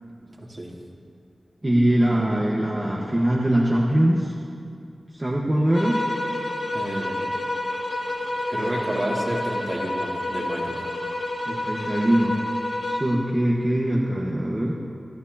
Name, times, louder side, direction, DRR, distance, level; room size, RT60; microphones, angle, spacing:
voice 1, 0.4-0.7 6.7-7.3 8.5-10.8, right 1 dB, 45° right, -4 dB, 2.9 m, -30 dB
voice 2, 1.6-4.3 5.1-6.0 11.4-12.4 12.9-14.8, right 1 dB, 25° right, -4 dB, 1.3 m, -22 dB
sound 1, 5.7-13.2, left 1 dB, 85° left, 2.2 m, -29 dB
26.0 x 12.5 x 2.8 m, 2.4 s
wide cardioid pair, 85°, 0 cm